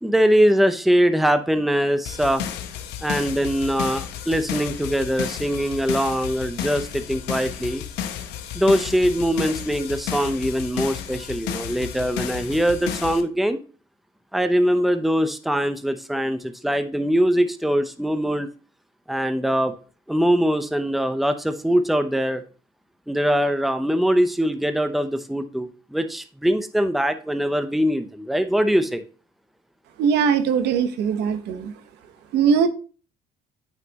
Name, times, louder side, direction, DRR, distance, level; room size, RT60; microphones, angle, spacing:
voice 1, 0.0-2.4 3.0-7.8 8.5-13.6 14.3-18.5 19.1-19.7 20.1-22.4 23.1-29.0, equal, ahead, 0.7 m, -22 dB
sound 1, 2.0-13.2, left 9 dB, 90° left, 1.1 m, -32 dB
voice 2, 30.0-31.7 32.3-32.7, right 7 dB, 80° right, 1.1 m, -20 dB
9.2 x 5.8 x 2.9 m
cardioid pair, 110°, 17 cm